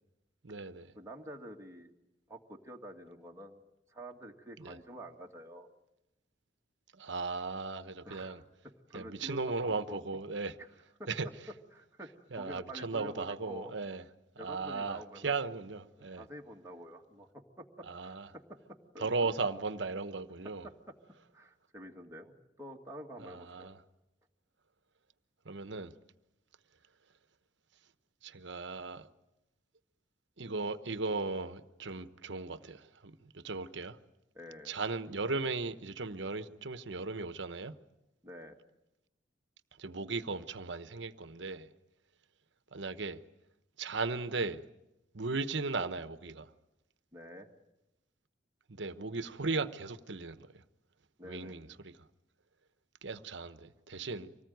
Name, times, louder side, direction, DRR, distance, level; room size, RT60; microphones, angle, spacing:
voice 1, 0.4-0.9 4.6-4.8 6.9-8.4 8.9-10.5 11.1-11.3 12.3-14.0 14.4-16.2 17.8-18.3 19.0-20.7 23.2-23.8 25.4-25.9 28.2-29.1 30.4-34.0 34.6-37.8 39.8-41.7 42.7-43.2 43.8-44.6 45.1-46.5 48.7-50.6 51.2-52.1 53.0-54.4, right 3 dB, 65° right, 1.1 m, -37 dB
voice 2, 1.0-1.9 2.3-3.6 3.9-5.7 8.1-8.4 8.9-10.0 10.3-10.7 11.0-11.1 11.7-13.7 14.4-15.4 16.0-17.3 17.6-18.4 18.7-19.3 20.6-20.7 21.3-23.7 34.3-34.7 38.2-38.6 47.1-47.5 51.2-51.6, equal, 15° right, 2.0 m, -48 dB
25.5 x 19.0 x 9.3 m
head